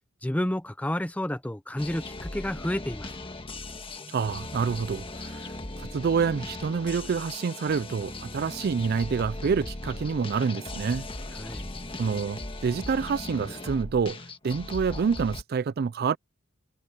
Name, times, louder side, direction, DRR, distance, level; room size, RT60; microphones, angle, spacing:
voice 1, 0.2-3.1 11.3-11.7, left 1 dB, 5° left, 0.7 m, -30 dB
sound 1, 1.8-15.4, left 2 dB, 25° left, 1.5 m, -38 dB
voice 2, 4.1-5.5 5.8-11.1 12.0-16.2, right 5 dB, 50° right, 0.4 m, -27 dB
head